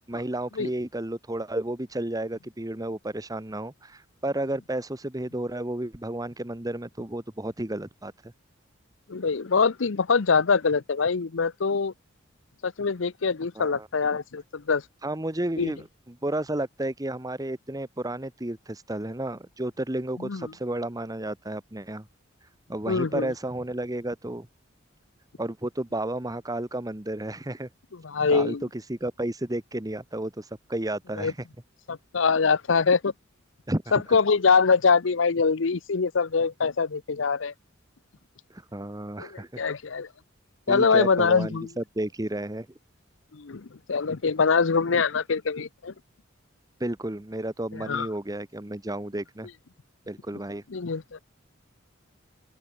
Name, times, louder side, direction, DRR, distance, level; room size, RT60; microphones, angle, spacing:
voice 1, 0.1-8.3 13.5-13.9 15.0-22.1 22.7-24.5 25.4-27.7 28.3-31.4 33.7-33.8 38.5-39.6 40.7-42.7 46.8-49.5 50.1-50.6, right 1 dB, 20° right, 1.3 m, -32 dB
voice 2, 9.1-11.9 12.6-14.8 15.6-15.7 20.2-20.4 22.9-23.3 28.0-28.6 31.2-31.3 31.9-33.1 33.9-37.5 39.2-40.1 40.7-41.7 43.3-45.9 47.8-48.1 50.7-51.2, left 5 dB, 70° left, 0.7 m, -24 dB
open air
head